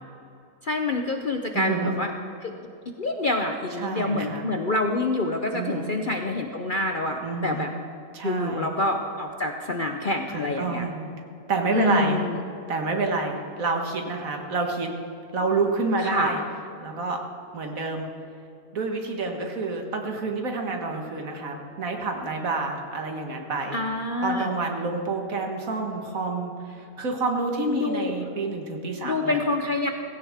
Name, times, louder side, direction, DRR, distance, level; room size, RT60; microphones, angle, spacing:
voice 1, 0.6-2.1 2.4-2.5 3.0-7.7 8.2-10.9 11.7-12.4 16.0-16.4 23.7-24.5 27.7-28.2 29.0-29.9, left 2 dB, 45° left, 4 dB, 0.7 m, -27 dB
voice 2, 1.5-1.9 3.8-4.4 5.5-5.9 7.2-7.7 8.1-8.7 10.3-11.1 11.5-12.2 12.7-14.9 15.3-16.4 16.8-17.2 17.5-18.1 18.7-23.8 24.2-29.4, right 3 dB, 60° right, 3 dB, 1.9 m, -28 dB
17.0 x 16.5 x 3.6 m, 2.6 s
omnidirectional pair, 1.6 m